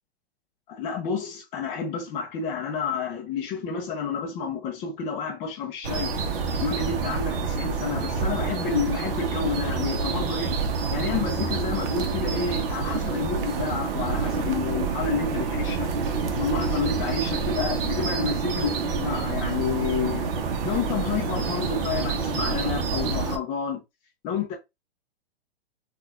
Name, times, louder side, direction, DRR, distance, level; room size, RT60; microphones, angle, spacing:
voice 1, 0.7-6.1 6.6-10.6 10.9-15.9 16.4-20.3 20.6-23.8 24.2-24.6, left 6 dB, 20° left, 0.4 m, -30 dB
sound 1, 5.8-23.4, right 5 dB, 55° right, 0.7 m, -27 dB
3.8 x 2.3 x 2.4 m
hypercardioid pair, 135°, 33 cm